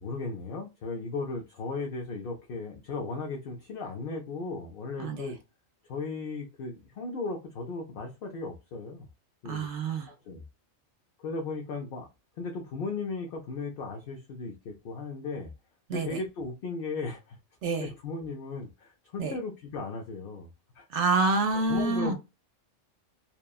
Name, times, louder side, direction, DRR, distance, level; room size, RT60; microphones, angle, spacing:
voice 1, 0.0-5.4 5.9-9.1 9.4-9.7 10.3-10.4 11.2-12.1 12.4-15.5 15.9-17.4 17.7-20.5 20.7-20.9 21.7-22.1, left 3 dB, 55° left, 0.7 m, -36 dB
voice 2, 9.5-10.1 15.9-16.2 17.6-17.9 19.2-19.3 20.9-22.1, right 3 dB, 65° right, 0.9 m, -27 dB
2.9 x 2.2 x 2.2 m
omnidirectional pair, 1.3 m